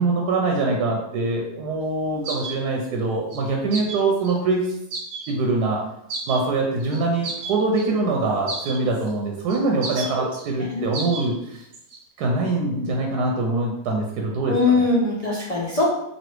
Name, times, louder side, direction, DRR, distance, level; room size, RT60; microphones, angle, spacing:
voice 1, 0.0-4.7 5.3-5.8 6.3-11.6 12.2-14.8, right 3 dB, 85° right, 0 dB, 1.1 m, -23 dB
sound 1, 2.2-2.6 3.3-3.4 3.7-4.4 4.9-5.4 6.1-6.4 6.8-7.9 8.5-9.1 9.5-10.5 10.9-11.3 11.6-12.0, right 3 dB, 70° right, 0.6 m, -33 dB
voice 2, 14.5-15.9, left 3 dB, 85° left, -6 dB, 0.3 m, -21 dB
3.1 x 2.6 x 3.0 m, 0.81 s
omnidirectional pair, 1.7 m